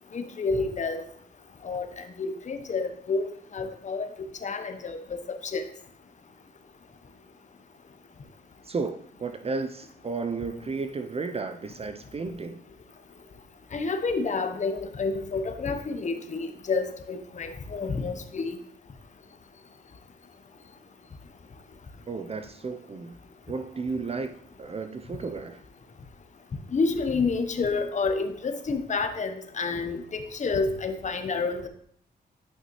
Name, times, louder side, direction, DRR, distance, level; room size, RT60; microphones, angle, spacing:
voice 1, 0.1-1.0 1.6-3.2 3.5-4.1 4.4-5.0 5.3-5.6 13.7-18.6 26.7-31.7, left 4 dB, 45° left, 7 dB, 0.9 m, -29 dB
voice 2, 8.6-12.6 22.1-23.2 23.5-24.3 24.6-25.6, right 4 dB, 35° right, 9 dB, 0.6 m, -33 dB
9.0 x 5.6 x 3.1 m, 0.63 s
cardioid pair, 65°, 18 cm